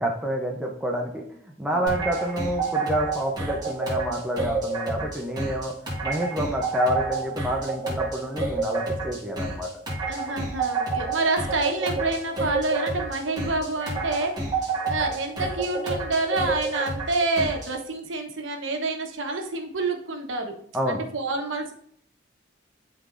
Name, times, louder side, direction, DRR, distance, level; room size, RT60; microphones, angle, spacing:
voice 1, 0.0-5.7 6.0-9.7 20.7-21.0, equal, 5° right, -1 dB, 0.7 m, -28 dB
sound 1, 1.9-17.7, right 3 dB, 20° right, 1.8 m, -29 dB
voice 2, 10.1-14.4 14.9-20.5 20.9-21.7, right 3 dB, 85° right, 3 dB, 1.1 m, -28 dB
11.0 x 3.9 x 2.6 m, 0.64 s
head